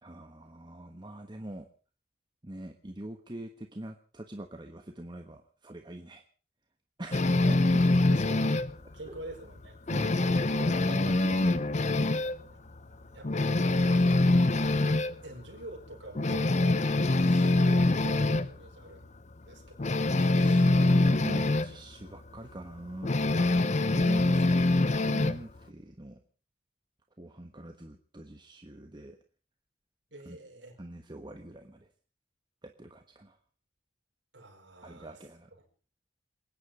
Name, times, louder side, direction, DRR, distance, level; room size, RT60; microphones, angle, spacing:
voice 1, 0.0-1.7 2.4-6.2 7.0-7.6 9.1-9.2 9.9-12.0 20.2-23.2 23.9-24.3 25.1-26.2 27.2-29.2 30.2-30.4 30.8-31.9 32.6-33.4 34.8-35.5, right 1 dB, 25° right, 5 dB, 1.2 m, -43 dB
sound 1, 7.1-8.7 9.2-9.3 9.7-12.4 12.8-12.9 13.2-15.1 15.6-15.7 16.2-18.5 19.8-21.7 23.0-25.4, left 2 dB, 40° left, 0.8 m, -24 dB
voice 2, 7.1-7.5 8.1-8.5 8.9-10.4 12.5-13.3 13.8-14.7 15.2-19.9 23.7-24.3 30.1-30.8 34.3-35.2 35.6-35.7, right 2 dB, 70° right, 0 dB, 5.0 m, -48 dB
27.5 x 10.0 x 5.1 m, 0.39 s
head